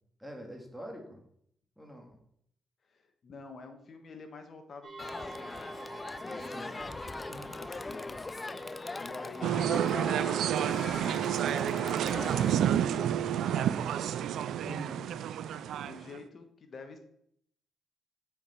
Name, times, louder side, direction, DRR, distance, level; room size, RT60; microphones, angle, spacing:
voice 1, 0.2-1.2 1.8-2.2 6.5-6.9 7.3-7.5 14.6-15.1, equal, ahead, 1 dB, 2.1 m, -45 dB
voice 2, 2.9-5.7 6.2-6.9 7.6-8.2 9.0-13.8 15.8-17.0, left 4 dB, 55° left, 6 dB, 1.3 m, -48 dB
sound 1, 4.8-14.7, right 3 dB, 45° right, 1.8 m, -50 dB
Crowd, 5.0-12.6, left 3 dB, 30° left, 0.3 m, -40 dB
sound 2, 9.4-16.2, right 10 dB, 80° right, 0.3 m, -29 dB
7.3 x 4.9 x 4.3 m, 0.70 s
cardioid pair, 70°, 0 cm